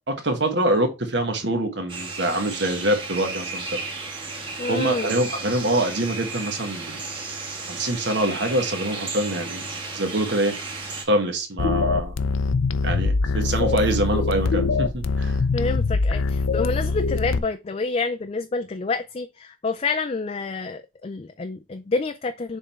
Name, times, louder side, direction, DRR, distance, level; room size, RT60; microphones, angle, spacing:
voice 1, 0.1-3.8 4.7-7.0 7.7-9.7 9.9-10.5 11.1-12.1 12.8-15.4, right 1 dB, 60° right, 1.5 m, -25 dB
sound 1, 1.9-11.0, right 3 dB, 25° right, 1.6 m, -33 dB
voice 2, 4.6-5.1 15.5-22.6, left 3 dB, 30° left, 0.4 m, -28 dB
sound 2, 11.6-17.4, left 4 dB, 80° left, 0.5 m, -23 dB
6.9 x 3.6 x 4.3 m
head